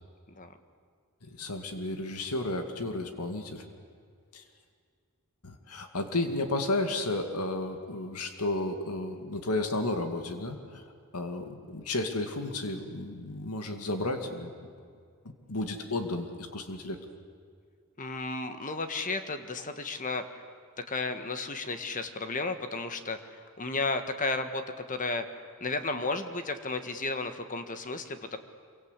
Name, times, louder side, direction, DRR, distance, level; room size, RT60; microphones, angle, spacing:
voice 1, 1.2-3.6 4.3-4.4 5.4-10.8 11.1-14.7 15.5-17.0, left 2 dB, 90° left, 6 dB, 2.3 m, -33 dB
voice 2, 18.0-20.4 20.8-25.2 25.6-28.4, left 3 dB, 35° left, 8 dB, 1.6 m, -33 dB
27.0 x 24.0 x 8.3 m, 2.2 s
head